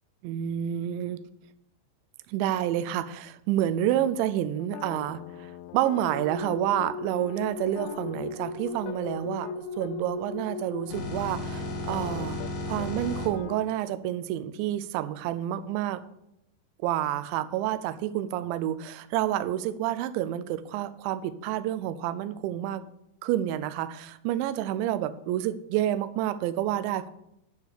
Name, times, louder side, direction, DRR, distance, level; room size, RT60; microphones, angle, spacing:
voice 1, 0.2-1.2 2.3-12.4 12.7-16.0 16.8-22.8 23.2-27.1, right 12 dB, 90° right, 13 dB, 3.0 m, -29 dB
sound 1, 4.6-9.9 10.4-10.6 11.1-12.5 12.8-12.9 13.2-13.8, left 12 dB, 80° left, 2.6 m, -43 dB
sound 2, 6.1-13.3, left 2 dB, 60° left, 3.5 m, -35 dB
10.5 x 7.1 x 6.7 m, 0.83 s
omnidirectional pair, 5.2 m